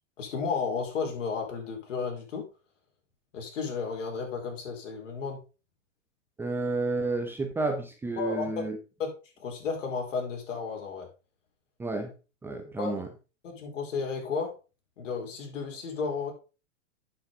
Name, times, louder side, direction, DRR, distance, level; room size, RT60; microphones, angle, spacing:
voice 1, 0.2-2.4 3.3-5.4 8.2-8.6 9.0-9.1 9.4-11.1 12.8-12.9 13.4-14.5 15.0-16.3, left 5 dB, 75° left, 2 dB, 4.5 m, -33 dB
voice 2, 6.4-8.8 11.8-12.1 12.4-13.1, right 3 dB, 5° right, 4 dB, 0.8 m, -31 dB
8.4 x 7.7 x 3.8 m, 0.32 s
hypercardioid pair, 155°, 37 cm